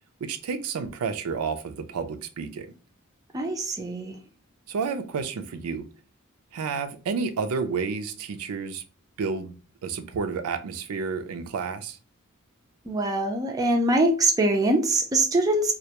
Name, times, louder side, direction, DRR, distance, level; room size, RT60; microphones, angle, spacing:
voice 1, 0.2-2.7 4.7-5.8 6.5-8.8 9.2-9.6 9.8-12.0, right 5 dB, 90° right, 0.4 m, -30 dB
voice 2, 3.3-4.2 12.9-15.7, right 1 dB, 15° right, 0.4 m, -23 dB
2.3 x 2.1 x 2.8 m
head